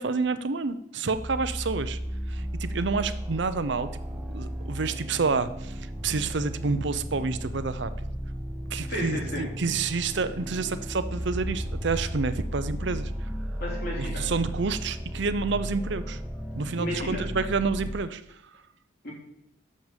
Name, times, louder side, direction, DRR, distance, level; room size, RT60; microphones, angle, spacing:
voice 1, 0.0-2.0 2.3-3.9 4.3-7.9 8.7-13.1 14.0-16.2 16.6-18.2, right 4 dB, 55° right, 12 dB, 0.6 m, -29 dB
sound 1, 1.1-18.0, equal, 5° right, 0.6 m, -34 dB
voice 2, 8.9-9.4 13.6-14.2 16.7-17.2 19.0-19.1, left 1 dB, 50° left, -3 dB, 3.2 m, -33 dB
6.6 x 6.1 x 7.3 m, 0.78 s
head